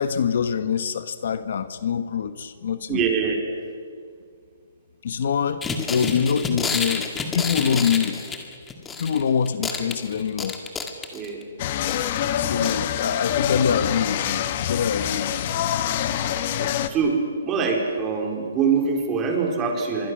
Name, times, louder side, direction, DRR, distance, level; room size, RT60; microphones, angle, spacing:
voice 1, 0.0-3.0 5.0-8.2 9.0-10.6 12.2-15.5, left 7 dB, 60° left, 11 dB, 1.3 m, -25 dB
voice 2, 2.9-3.4 11.1-11.4 16.6-17.2 17.4-20.1, right 5 dB, 20° right, 1 dB, 4.3 m, -24 dB
sound 1, 5.6-9.2 9.5-11.4 11.9-12.2 12.6-12.7 13.0-13.1, left 4 dB, 10° left, 2.0 m, -29 dB
sound 2, 11.6-16.9, left 10 dB, 40° left, 1.4 m, -25 dB
25.5 x 24.5 x 6.3 m, 2.2 s
hypercardioid pair, 160°, 0 cm